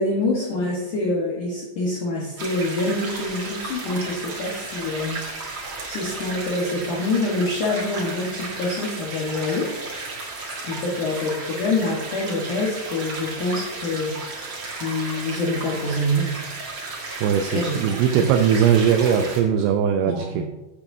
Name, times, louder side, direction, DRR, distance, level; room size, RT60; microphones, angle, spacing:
voice 1, 0.0-5.2 5.9-10.0 10.6-14.2 14.8-16.4 17.5-17.8 18.2-18.3 20.1-20.5, left 2 dB, 65° left, -3 dB, 2.1 m, -26 dB
sound 1, 2.4-19.4, right 3 dB, 55° right, 1.4 m, -34 dB
voice 2, 17.2-20.5, right 8 dB, 85° right, 6 dB, 2.3 m, -20 dB
15.0 x 8.3 x 2.7 m, 1.1 s
omnidirectional pair, 5.4 m